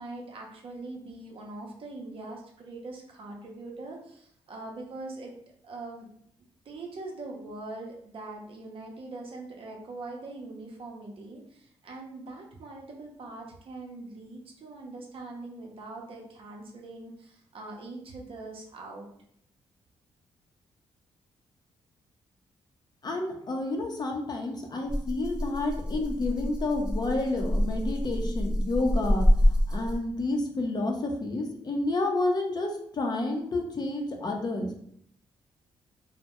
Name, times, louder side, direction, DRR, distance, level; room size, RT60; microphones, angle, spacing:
voice 1, 0.0-5.3 5.6-6.1 6.6-19.1, right 2 dB, 60° right, 1 dB, 0.6 m, -42 dB
voice 2, 23.0-34.8, left 2 dB, 40° left, 3 dB, 0.5 m, -30 dB
Rattle (instrument), 24.9-30.2, equal, 5° right, 0.6 m, -27 dB
2.1 x 2.0 x 2.9 m, 0.67 s
cardioid pair, 65°, 11 cm